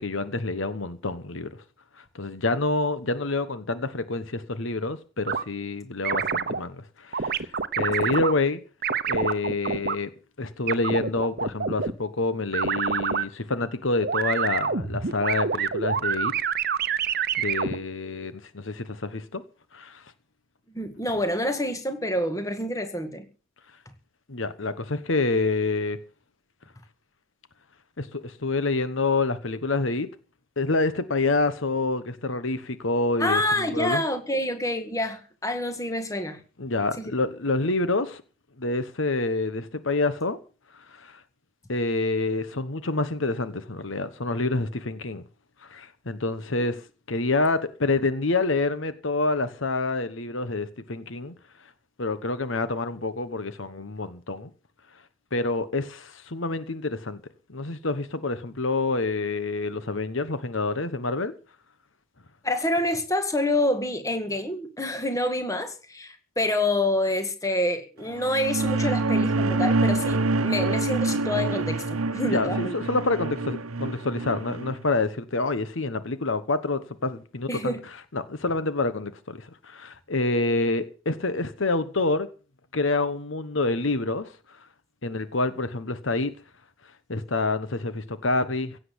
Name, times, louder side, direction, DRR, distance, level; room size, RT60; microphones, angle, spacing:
voice 1, 0.0-1.6 2.0-8.6 9.1-10.1 10.4-16.3 17.1-19.4 19.7-20.0 24.3-26.0 28.0-30.1 30.6-34.0 36.6-38.2 38.6-40.4 40.7-41.2 41.7-45.2 45.6-51.3 52.0-54.5 55.3-57.2 57.5-61.3 72.2-77.8 78.1-82.3 82.7-84.7 85.0-86.3 87.1-88.8, left 3 dB, 65° left, 1.2 m, -27 dB
sound 1, 5.3-5.4 6.0-6.6 7.1-8.3 8.8-10.0 10.7-11.9 12.5-13.2 14.0-17.8, right 6 dB, 50° right, 0.9 m, -26 dB
voice 2, 20.7-23.3 33.2-36.4 62.4-72.7 77.5-77.8, left 1 dB, 15° left, 1.9 m, -27 dB
sound 2, 68.1-74.7, right 3 dB, 90° right, 0.9 m, -26 dB
16.5 x 7.7 x 8.1 m
head